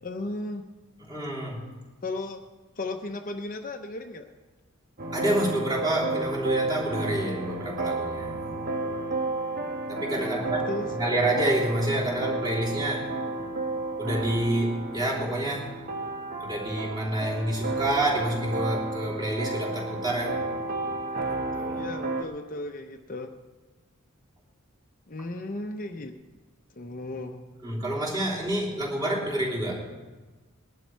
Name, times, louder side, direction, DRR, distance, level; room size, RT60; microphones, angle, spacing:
voice 1, 0.0-0.6 2.0-2.4 2.8-4.3 10.1-10.9 21.7-23.3 25.1-26.2 26.7-27.4, left 2 dB, 40° left, 4 dB, 0.8 m, -35 dB
voice 2, 1.0-1.7 5.1-8.4 9.9-13.1 14.0-15.7 16.4-20.4 21.3-21.9 27.6-29.9, right 1 dB, 20° right, -5 dB, 3.5 m, -28 dB
sound 1, 5.0-22.2, right 2 dB, 45° right, 1.2 m, -32 dB
20.5 x 11.5 x 4.6 m, 1.3 s
head